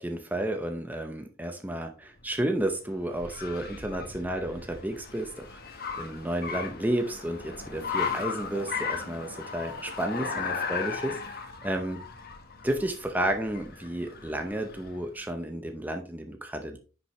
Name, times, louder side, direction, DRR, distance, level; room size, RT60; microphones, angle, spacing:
voice 1, 0.0-5.6 6.0-12.0 12.6-16.8, right 1 dB, 10° right, 4 dB, 0.7 m, -32 dB
Car, 2.2-15.1, left 5 dB, 50° left, 1.4 m, -37 dB
10.0 x 5.7 x 3.2 m, 0.36 s
head